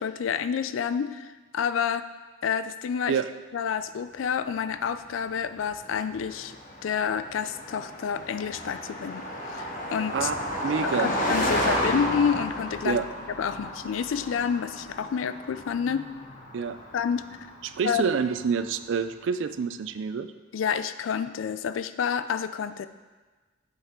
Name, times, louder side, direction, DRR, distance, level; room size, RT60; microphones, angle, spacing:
voice 1, 0.0-2.1 2.4-3.2 3.5-6.5 6.8-10.3 10.8-13.0 13.4-16.1 16.9-17.2 17.8-18.0 20.5-22.9, left 7 dB, 75° left, 12 dB, 0.3 m, -29 dB
Car passing by, 4.9-18.6, equal, 40° left, 1.1 m, -33 dB
voice 2, 10.6-11.1 12.8-13.1 16.5-16.8 17.6-20.3, right 6 dB, 65° right, 11 dB, 0.3 m, -27 dB
7.9 x 5.5 x 3.6 m, 1.3 s
head